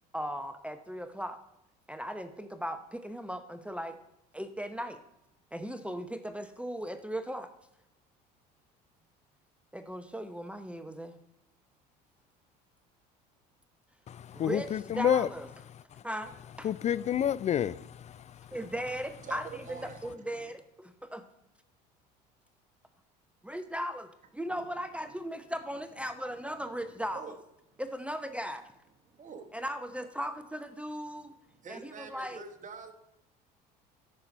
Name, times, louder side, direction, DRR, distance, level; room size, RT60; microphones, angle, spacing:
voice 1, 0.1-1.4 1.9-4.0 4.3-5.0 5.5-7.5 9.7-11.1 14.3-14.7 15.0-15.5 16.0-16.7 18.5-21.2 23.4-27.2 27.8-28.7 29.5-31.3 31.7-32.4, equal, 5° right, 0.8 m, -37 dB
voice 2, 14.1-15.3 15.7-15.8 16.6-18.4, left 9 dB, 35° left, 0.4 m, -29 dB
voice 3, 18.5-20.5 24.4-25.6 26.0-27.4 27.7-27.8 29.0-29.6 31.1-32.9, right 5 dB, 35° right, 1.6 m, -48 dB
13.0 x 5.8 x 5.4 m
hypercardioid pair, 75°, 21 cm